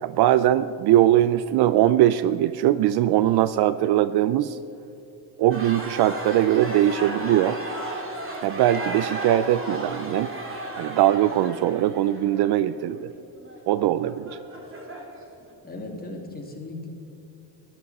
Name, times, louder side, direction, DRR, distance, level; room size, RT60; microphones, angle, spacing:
voice 1, 0.0-4.6 5.4-7.6 8.4-10.3 10.8-13.1 13.7-14.3, right 13 dB, 55° right, 15 dB, 0.5 m, -21 dB
sound 1, 5.5-15.4, right 1 dB, 25° right, 2.5 m, -34 dB
voice 2, 15.6-16.9, left 2 dB, 20° left, 0 dB, 2.5 m, -37 dB
13.5 x 12.0 x 4.2 m, 2.9 s
supercardioid pair, 90°, 47 cm